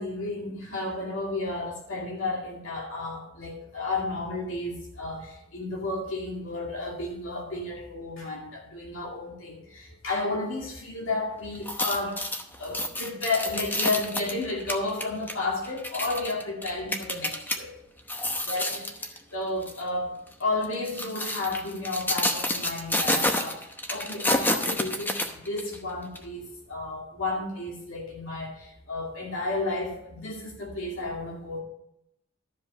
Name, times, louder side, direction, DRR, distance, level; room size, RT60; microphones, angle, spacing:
voice 1, 0.0-12.2 12.6-17.7 18.5-23.6 23.9-31.6, left 2 dB, 70° left, -1 dB, 2.3 m, -32 dB
sound 1, 11.6-17.6 18.0-19.2 19.6-19.8 20.6-25.8 26.2-26.3, left 1 dB, 10° left, 0.9 m, -29 dB
12.5 x 5.2 x 6.4 m, 0.79 s
head